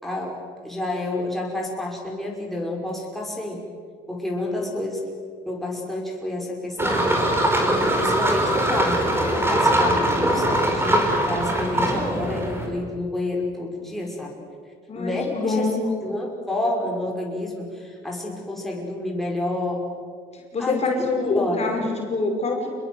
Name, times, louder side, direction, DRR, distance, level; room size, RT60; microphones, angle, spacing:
voice 1, 0.0-0.4 0.6-3.6 4.1-5.1 5.5-7.1 7.7-14.4 14.9-15.7 16.0-19.9 20.6-21.0 21.4-21.7, left 1 dB, ahead, -2 dB, 5.7 m, -29 dB
sound 1, 6.8-12.7, right 1 dB, 15° right, 5.4 m, -21 dB
voice 2, 14.9-15.8 20.3-22.7, left 3 dB, 40° left, 1 dB, 5.8 m, -25 dB
28.0 x 21.5 x 8.0 m, 2.1 s
cardioid pair, 110°, 17 cm